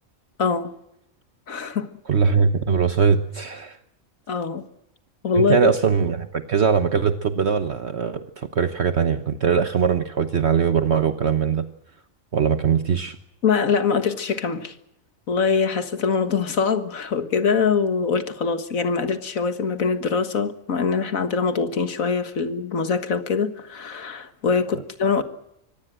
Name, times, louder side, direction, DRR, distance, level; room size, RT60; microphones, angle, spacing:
voice 1, 0.4-0.7 1.5-1.9 4.3-4.6 5.2-5.7 13.4-14.8 15.3-25.2, left 5 dB, 85° left, 2.0 m, -23 dB
voice 2, 2.1-3.8 5.4-11.6 12.3-13.2, right 6 dB, 55° right, 1.3 m, -21 dB
24.0 x 18.0 x 7.6 m
omnidirectional pair, 1.4 m